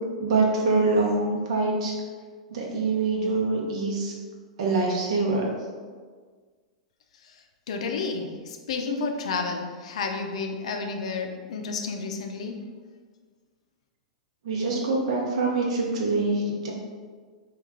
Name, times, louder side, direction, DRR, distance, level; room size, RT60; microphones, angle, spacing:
voice 1, 0.2-1.9 2.5-4.1 4.6-5.4 14.4-16.7, right 3 dB, 65° right, -2 dB, 0.9 m, -24 dB
voice 2, 7.7-8.3 8.7-12.6, left 4 dB, 70° left, 4 dB, 0.5 m, -30 dB
3.1 x 2.5 x 3.7 m, 1.5 s
hypercardioid pair, 105°, 4 cm